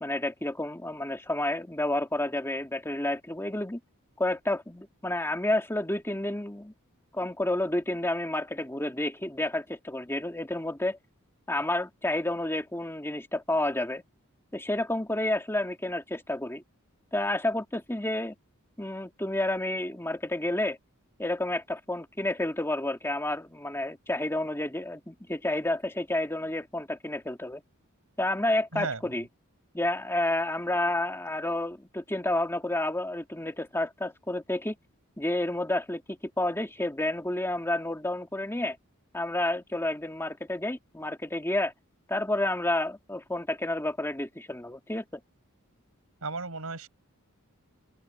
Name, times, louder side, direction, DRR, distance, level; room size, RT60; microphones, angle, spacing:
voice 1, 0.0-3.8 4.2-6.7 7.1-11.0 11.5-14.0 14.5-16.6 17.1-18.3 18.8-20.8 21.2-27.6 28.2-29.3 29.7-34.8 35.2-38.8 39.1-41.7 42.1-45.2, left 1 dB, 10° left, 2.0 m, -30 dB
voice 2, 46.2-46.9, right 3 dB, 75° right, 5.1 m, -34 dB
open air
head